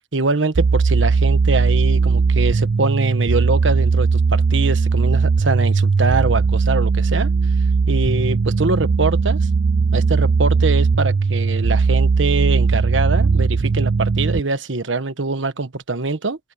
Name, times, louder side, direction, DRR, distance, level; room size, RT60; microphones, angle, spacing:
voice 1, 0.1-7.3 7.9-9.4 9.9-16.4, right 3 dB, 80° right, 1.3 m, -23 dB
sound 1, 0.5-14.4, right 4 dB, 55° right, 0.4 m, -18 dB
open air
head